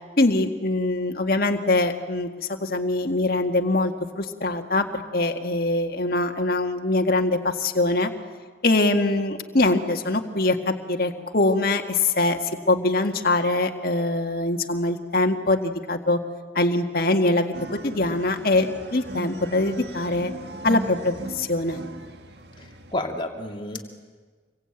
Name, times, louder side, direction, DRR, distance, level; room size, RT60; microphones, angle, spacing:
voice 1, 0.2-4.9 5.1-8.1 8.6-12.4 12.7-16.2 16.6-20.3 20.6-21.8, left 2 dB, 50° left, 4 dB, 1.8 m, -23 dB
sound 1, 17.5-22.9, right 2 dB, 60° right, 1.7 m, -38 dB
voice 2, 22.6-23.8, left 1 dB, 25° left, 3 dB, 2.5 m, -31 dB
27.0 x 22.5 x 9.0 m, 1.5 s
head